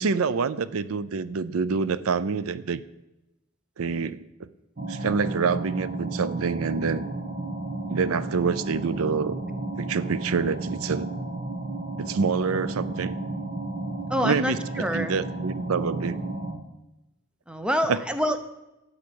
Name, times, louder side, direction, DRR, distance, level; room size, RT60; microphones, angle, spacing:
voice 1, 0.0-2.8 3.8-4.2 4.9-7.0 7.9-9.4 9.8-11.1 12.0-13.2 14.2-14.6 14.9-16.2 17.9-18.0, right 5 dB, 85° right, 16 dB, 0.5 m, -26 dB
sound 1, 4.8-16.5, right 2 dB, 45° right, 1.5 m, -33 dB
voice 2, 14.1-15.2 17.5-18.4, equal, 5° right, 8 dB, 0.7 m, -26 dB
13.0 x 5.0 x 8.6 m, 0.97 s
head